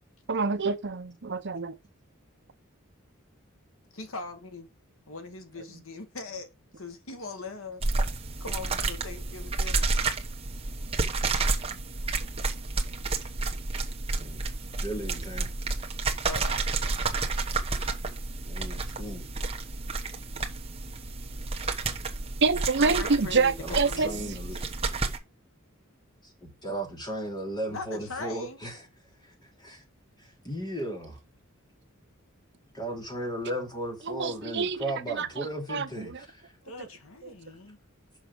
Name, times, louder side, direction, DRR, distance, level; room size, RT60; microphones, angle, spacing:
voice 1, 0.3-1.8 22.4-24.1 34.1-34.8 35.1-35.9, right 4 dB, 55° right, 0.7 m, -26 dB
voice 2, 3.9-4.7 5.1-6.5 6.8-8.1 8.4-9.9 16.3-16.6 22.8-24.5 27.7-28.6 36.6-37.8, left 3 dB, 75° left, 1.4 m, -40 dB
sound 1, 7.8-25.2, right 3 dB, 30° right, 1.2 m, -31 dB
voice 3, 14.8-15.5 18.4-19.3 23.6-24.6 26.2-28.9 29.2-29.8 30.2-31.2 32.7-36.5, right 1 dB, 20° left, 3.1 m, -36 dB
6.4 x 6.1 x 5.3 m
head